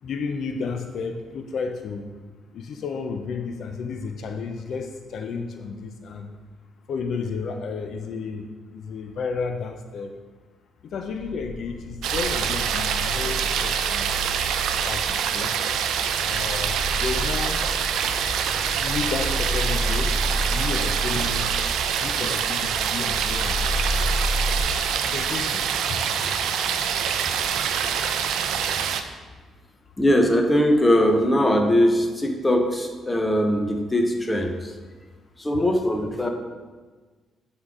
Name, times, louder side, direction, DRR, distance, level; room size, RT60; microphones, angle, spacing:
voice 1, 0.0-2.1 2.5-6.3 6.9-8.5 8.7-10.1 10.8-14.1 14.8-15.6 16.3-17.6 18.8-20.1 20.5-21.5 22.0-24.0 25.0-26.0, left 5 dB, 65° left, 5 dB, 0.5 m, -32 dB
sound 1, 10.9-24.6, equal, 5° right, 1.4 m, -31 dB
sound 2, 12.0-29.0, right 8 dB, 80° right, 0.4 m, -25 dB
voice 2, 30.0-34.7 35.4-36.3, equal, 15° left, 4 dB, 0.8 m, -21 dB
8.1 x 3.8 x 3.7 m, 1.4 s
cardioid pair, 90°, 0 cm